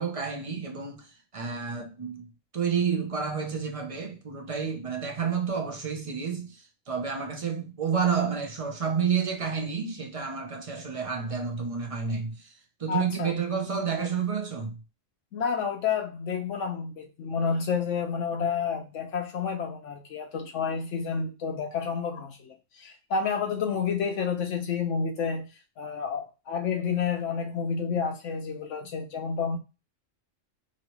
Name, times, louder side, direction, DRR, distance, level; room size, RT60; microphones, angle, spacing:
voice 1, 0.0-14.8, right 6 dB, 40° right, 0.5 m, -30 dB
voice 2, 12.9-13.3 14.0-14.1 15.3-25.5 25.8-29.6, left 6 dB, 75° left, 0.9 m, -30 dB
3.0 x 2.7 x 3.0 m
omnidirectional pair, 1.3 m